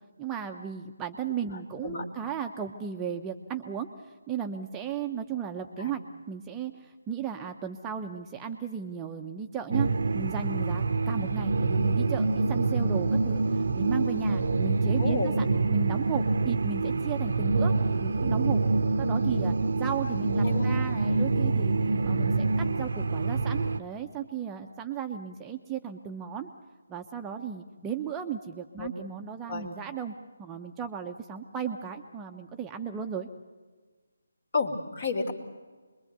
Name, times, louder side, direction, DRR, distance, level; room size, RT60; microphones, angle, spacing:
voice 1, 0.2-6.0 6.3-9.9 10.1-17.7 18.0-18.6 19.0-21.7 22.0-26.5 26.9-30.1 30.4-33.3, right 7 dB, 15° right, 4 dB, 0.8 m, -35 dB
sound 1, 9.7-23.8, right 3 dB, 60° right, 0.8 m, -26 dB
voice 2, 15.0-15.3 20.4-20.7 28.8-28.9 29.5-29.7 34.5-35.3, left 4 dB, 45° left, 6 dB, 2.8 m, -30 dB
25.0 x 22.0 x 6.8 m, 1.4 s
figure-of-eight pair, 155°, 0 cm